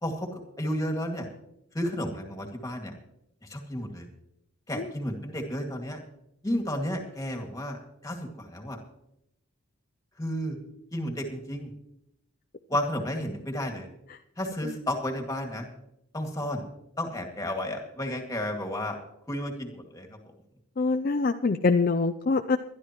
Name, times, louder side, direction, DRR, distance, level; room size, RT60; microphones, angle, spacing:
voice 1, 0.0-1.3 1.7-2.9 3.4-4.1 4.7-6.0 6.4-8.8 10.2-10.6 10.9-11.7 12.7-13.9 14.4-15.7 16.1-16.6 17.0-19.0 19.3-20.2, equal, 15° left, 2 dB, 2.1 m, -32 dB
voice 2, 20.8-22.6, left 3 dB, 40° left, 8 dB, 0.4 m, -25 dB
21.0 x 12.0 x 3.0 m, 0.80 s
head